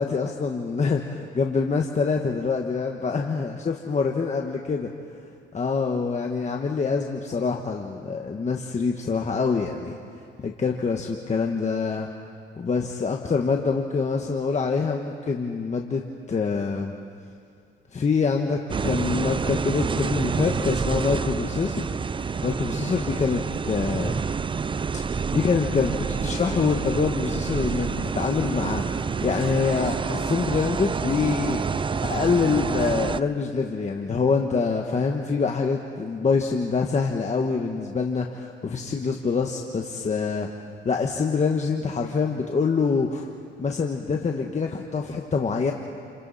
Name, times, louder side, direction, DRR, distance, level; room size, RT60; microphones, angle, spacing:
voice 1, 0.0-4.9 5.5-9.9 10.4-12.1 12.6-16.9 17.9-21.8 22.4-24.1 25.3-29.0 29.2-31.6 32.0-40.5 40.8-43.3 43.6-45.7, left 5 dB, 35° left, 2 dB, 1.5 m, -25 dB
sound 1, 18.7-33.2, right 5 dB, 25° right, 0.5 m, -28 dB
30.0 x 29.5 x 4.3 m, 2.4 s
cardioid pair, 90°, 20 cm